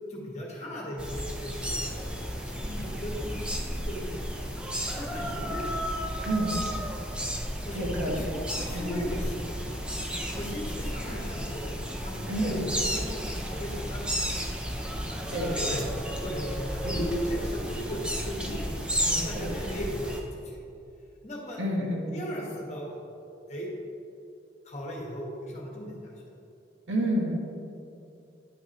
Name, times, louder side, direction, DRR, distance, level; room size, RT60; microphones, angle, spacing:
voice 1, 0.1-4.3 4.7-5.7 7.6-9.6 10.3-11.7 12.0-14.2 14.9-15.9 16.2-20.6 21.2-21.6 22.1-22.9 23.5-23.7 24.6-26.1, equal, 35° left, -3 dB, 1.4 m, -37 dB
sound 1, 1.0-20.2, equal, 5° right, 0.5 m, -33 dB
voice 2, 7.7-8.2 8.7-8.9 12.3-12.6 15.3-15.8 16.8-17.0 19.0-19.5 21.6-22.1 26.9-27.3, right 1 dB, 80° right, -2 dB, 1.5 m, -29 dB
10.5 x 5.9 x 3.0 m, 2.7 s
head